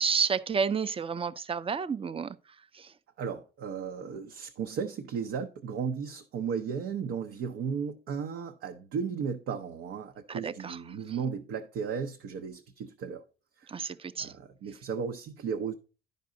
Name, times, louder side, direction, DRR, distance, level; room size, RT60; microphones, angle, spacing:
voice 1, 0.0-2.4 2.7-2.9 10.3-10.8 13.7-14.3, right 6 dB, 30° right, 0.5 m, -30 dB
voice 2, 3.2-13.2 13.6-13.9 14.2-15.7, right 6 dB, 80° right, 0.7 m, -35 dB
10.5 x 5.3 x 3.7 m
cardioid pair, 90°, 20 cm